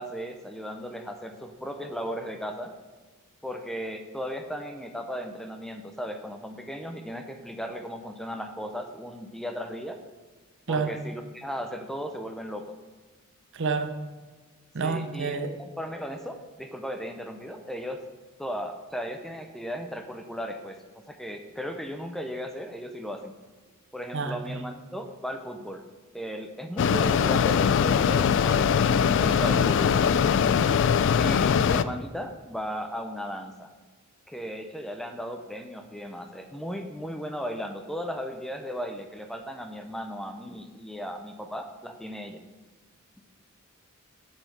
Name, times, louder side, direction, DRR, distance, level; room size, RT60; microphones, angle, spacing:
voice 1, 0.0-2.7 3.4-10.0 10.7-12.7 14.8-18.0 18.4-23.4 23.9-25.8 26.1-30.0 31.2-33.7 34.3-42.4, equal, ahead, 5 dB, 0.5 m, -36 dB
voice 2, 13.5-13.9 14.7-15.5 24.1-24.6, right 4 dB, 60° right, 8 dB, 0.7 m, -29 dB
Mechanisms, 26.8-31.8, left 7 dB, 60° left, 0.3 m, -22 dB
7.8 x 4.5 x 5.8 m, 1.3 s
head